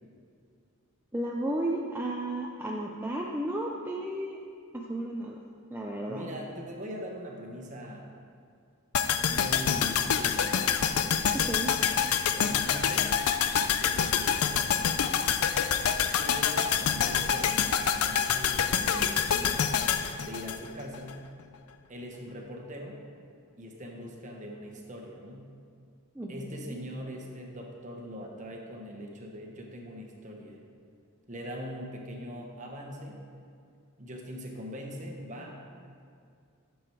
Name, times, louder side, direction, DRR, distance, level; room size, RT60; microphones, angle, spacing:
voice 1, 1.1-4.4 4.7-5.4 5.7-6.3 11.3-11.7 26.2-26.8, right 1 dB, 10° right, -2 dB, 0.5 m, -33 dB
voice 2, 6.1-8.1 9.3-10.7 12.3-13.1 13.8-14.7 16.2-19.7 20.2-21.2 21.9-23.0 23.6-25.5 26.3-30.6 31.3-33.2 34.0-35.6, equal, 35° right, 1 dB, 1.2 m, -41 dB
sound 1, 8.9-21.1 21.4-21.5, left 7 dB, 80° left, 0.5 m, -27 dB
11.0 x 7.0 x 4.6 m, 2.3 s
head